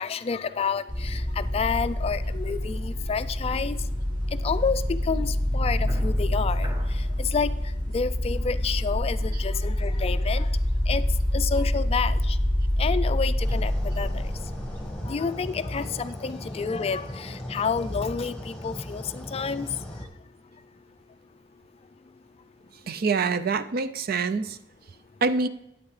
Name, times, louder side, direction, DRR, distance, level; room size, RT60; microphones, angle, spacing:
voice 1, 0.0-3.8 4.4-6.7 7.2-7.5 7.9-10.5 10.9-11.0 11.3-12.4 12.8-14.1 15.0-19.7, left 5 dB, 30° left, 12 dB, 0.3 m, -29 dB
sound 1, 0.9-14.9, left 1 dB, 25° right, 1.2 m, -26 dB
sound 2, 13.4-20.1, left 1 dB, 5° left, 1.3 m, -37 dB
voice 2, 22.9-24.6 25.2-25.5, right 4 dB, 55° right, 13 dB, 0.5 m, -25 dB
12.0 x 8.7 x 3.2 m, 0.84 s
head